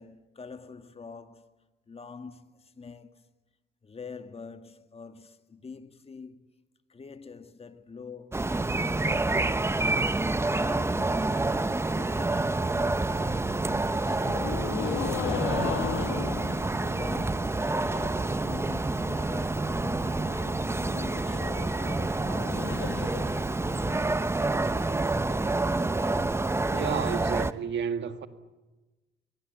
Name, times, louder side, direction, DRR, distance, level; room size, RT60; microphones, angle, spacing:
voice 1, 0.0-1.6 1.9-3.3 3.8-6.6 6.9-9.6 10.0-14.9 15.5-17.6 18.0-20.6 20.9-24.9, left 4 dB, 30° left, 1.7 m, -45 dB
sound 1, 8.3-27.5, right 2 dB, 15° right, 0.8 m, -28 dB
sound 2, 13.4-18.3 18.5-19.1 19.4-19.5 19.7-19.8 20.1-24.1, left 10 dB, 80° left, 1.2 m, -38 dB
voice 2, 26.7-28.3, right 7 dB, 65° right, 1.7 m, -31 dB
22.5 x 22.5 x 8.2 m
cardioid pair, 90°, 20 cm